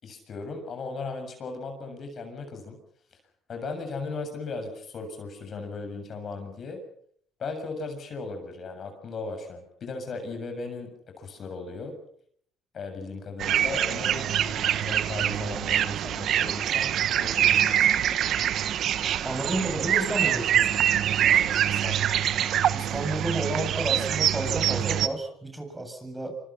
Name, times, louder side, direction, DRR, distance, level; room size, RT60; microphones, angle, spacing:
voice 1, 0.0-2.8 3.5-6.8 7.4-12.0 12.7-17.8 21.3-22.0, left 3 dB, 50° left, 6 dB, 7.2 m, -37 dB
sound 1, 13.4-25.1, right 10 dB, 60° right, 1.3 m, -25 dB
voice 2, 19.2-20.8 22.7-26.4, right 1 dB, 15° right, 5 dB, 7.7 m, -31 dB
25.5 x 25.5 x 5.8 m, 0.63 s
supercardioid pair, 70°, 0 cm